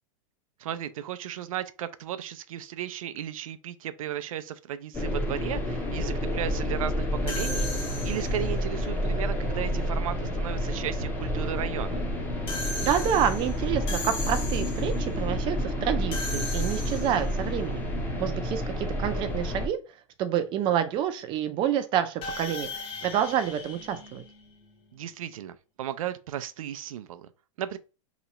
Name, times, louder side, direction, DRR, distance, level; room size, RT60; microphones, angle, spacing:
voice 1, 0.6-7.7 8.0-12.0 24.9-27.3 27.6-27.8, right 10 dB, 85° right, 0.4 m, -35 dB
sound 1, 4.9-19.7, equal, 10° left, 0.7 m, -29 dB
sound 2, 7.3-8.5 12.5-15.0 16.1-17.4 22.2-24.8, left 3 dB, 30° left, 0.9 m, -37 dB
voice 2, 12.8-17.8 18.2-19.8 20.2-22.7 23.0-24.2, right 9 dB, 30° right, 0.4 m, -28 dB
2.9 x 2.3 x 4.0 m
supercardioid pair, 140°, 17 cm